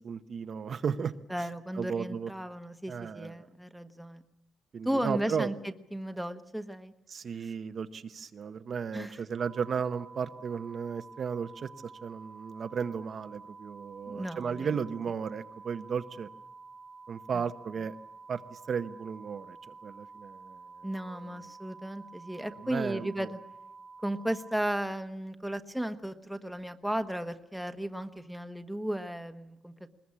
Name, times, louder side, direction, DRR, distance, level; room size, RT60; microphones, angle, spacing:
voice 1, 0.0-1.1 1.7-2.3 2.9-3.5 4.7-5.5 7.1-11.7 12.0-16.3 17.1-17.9 18.3-20.6 21.1-21.5 22.6-23.3, right 6 dB, 40° right, 9 dB, 0.8 m, -35 dB
voice 2, 1.3-4.2 4.8-6.9 7.3-7.5 8.9-9.2 14.1-14.7 17.3-17.4 20.8-23.4 24.0-29.9, right 1 dB, ahead, 8 dB, 1.2 m, -35 dB
sound 1, 9.4-24.5, right 4 dB, 60° right, 1.6 m, -50 dB
22.0 x 20.5 x 8.5 m, 0.89 s
wide cardioid pair, 170°, 0 cm